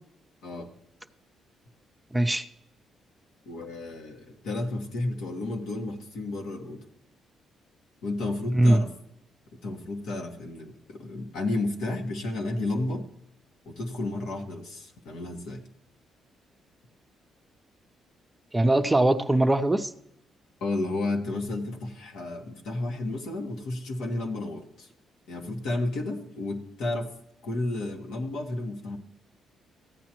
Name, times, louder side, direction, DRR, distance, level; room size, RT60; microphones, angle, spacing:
voice 1, 2.1-2.5 8.5-8.8 18.5-19.9, right 1 dB, 10° right, 8 dB, 0.6 m, -21 dB
voice 2, 3.4-6.8 8.0-8.9 9.6-13.1 13.6-15.6 20.6-24.9 25.3-27.1 27.4-29.0, left 2 dB, 85° left, 2 dB, 1.5 m, -32 dB
15.0 x 8.6 x 3.0 m, 0.77 s
cardioid pair, 90°, 0 cm